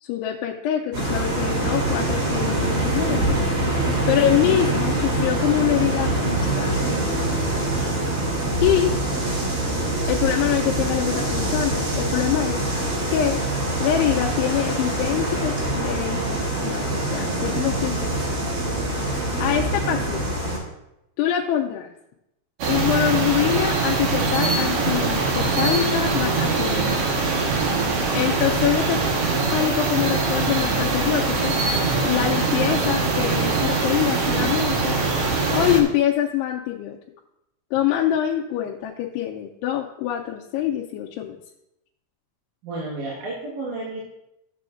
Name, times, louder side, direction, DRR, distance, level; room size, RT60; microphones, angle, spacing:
voice 1, 0.0-3.4 4.1-6.9 8.6-9.0 10.1-12.6 13.1-13.4 13.8-18.4 19.4-20.3 21.2-21.9 22.7-26.9 28.1-29.0 29.5-31.6 32.0-35.0 35.5-37.0 37.7-41.4, left 11 dB, 90° left, -1 dB, 2.7 m, -24 dB
sound 1, 0.9-20.6, right 2 dB, 40° right, 3.3 m, -24 dB
sound 2, 22.6-35.8, right 3 dB, 85° right, 1.3 m, -22 dB
voice 2, 42.6-44.0, right 2 dB, 60° right, -5 dB, 2.5 m, -31 dB
13.5 x 7.6 x 2.5 m, 0.86 s
omnidirectional pair, 4.7 m